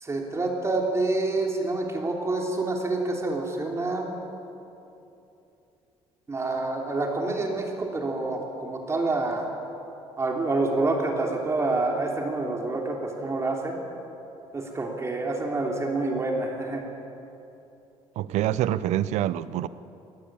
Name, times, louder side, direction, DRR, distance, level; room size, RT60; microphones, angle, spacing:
voice 1, 0.0-4.2 6.3-9.5 10.2-13.8 14.5-16.8, right 2 dB, 25° right, 1 dB, 3.1 m, -27 dB
voice 2, 18.2-19.7, right 12 dB, 85° right, 16 dB, 0.7 m, -26 dB
20.5 x 18.5 x 8.8 m, 2.9 s
cardioid pair, 120°, 11 cm